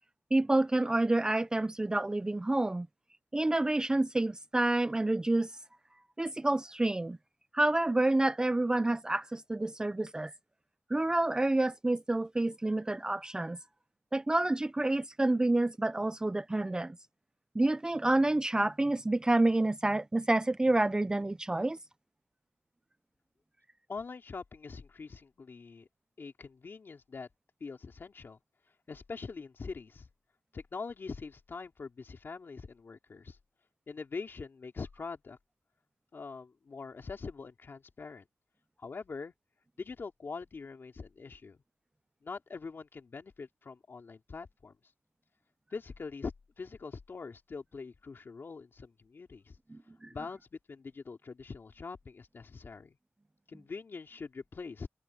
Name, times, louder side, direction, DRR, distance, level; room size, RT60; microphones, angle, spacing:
voice 1, 0.3-2.9 3.3-5.5 6.2-7.2 7.5-10.3 10.9-13.6 14.1-17.0 17.5-21.8 49.7-50.1, right 2 dB, 15° right, 0.5 m, -28 dB
voice 2, 23.9-25.9 26.2-27.3 27.6-28.4 28.9-30.1 30.5-33.4 33.9-35.4 36.1-38.2 38.8-39.3 39.8-41.6 42.2-44.8 45.7-49.6 50.1-53.0 53.5-54.9, left 4 dB, 45° left, 2.8 m, -43 dB
wide cardioid pair, 170°, 5 cm